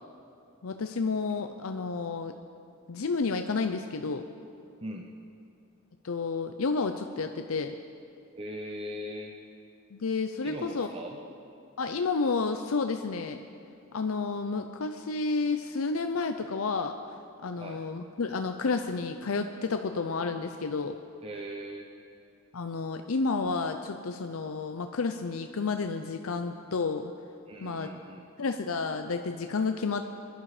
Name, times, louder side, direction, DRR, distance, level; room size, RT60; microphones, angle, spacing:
voice 1, 0.6-2.3 2.9-4.2 6.0-7.8 9.9-10.9 11.8-13.4 13.9-17.0 17.4-21.0 22.5-27.1 27.6-27.9 28.4-30.1, left 4 dB, 75° left, 7 dB, 0.6 m, -30 dB
voice 2, 8.4-9.4 10.4-11.2 17.6-17.8 21.2-21.9 27.5-28.3, equal, 25° right, 2 dB, 0.8 m, -39 dB
22.5 x 11.5 x 4.9 m, 2.5 s
head